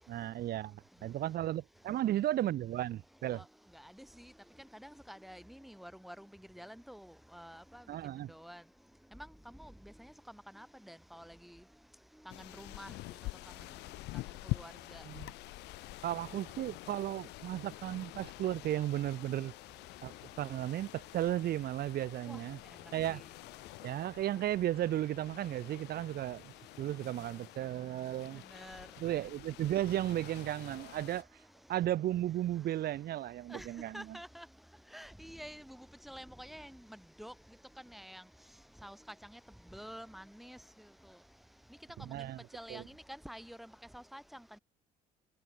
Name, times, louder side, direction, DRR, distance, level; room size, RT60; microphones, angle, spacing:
voice 1, 0.1-3.4 7.9-8.3 15.0-15.3 16.0-19.5 20.0-22.6 22.9-23.2 23.8-28.4 29.0-31.3 31.7-34.2 42.0-42.4 42.7-42.8, right 13 dB, 65° right, 6.8 m, -35 dB
voice 2, 4.8-6.3 6.5-7.8 8.3-8.6 9.1-9.3 9.6-10.1 10.5-11.6 12.3-12.9 14.4-15.0 22.3-22.4 23.1-23.2 28.5-28.9 33.5-33.7 33.9-34.5 34.9-37.3 37.9-38.2 38.8-39.0 39.3-39.4 39.7-40.6 42.1-44.2, equal, ahead, 7.2 m, -49 dB
sound 1, 12.3-31.2, left 20 dB, 90° left, 1.9 m, -47 dB
cardioid pair, 110°, 17 cm